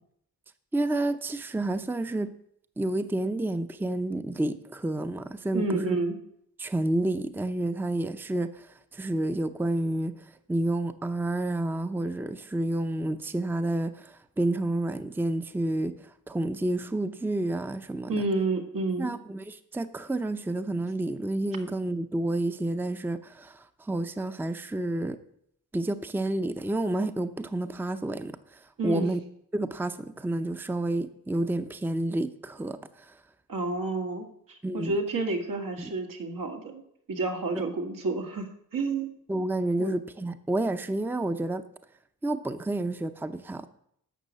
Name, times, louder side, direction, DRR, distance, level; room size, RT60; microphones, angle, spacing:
voice 1, 0.7-2.3 2.8-6.0 6.6-8.7 8.9-10.1 10.5-15.9 16.3-18.1 19.0-25.2 25.7-29.2 29.5-33.1 34.6-34.9 35.8-35.9 39.3-41.6 42.2-43.7, right 2 dB, 5° right, 0.6 m, -30 dB
voice 2, 5.5-6.2 18.1-19.1 28.8-29.0 33.5-36.8 37.1-39.1 39.8-40.0, right 3 dB, 80° right, 2.2 m, -30 dB
12.0 x 6.6 x 8.3 m
wide cardioid pair, 120°, 33 cm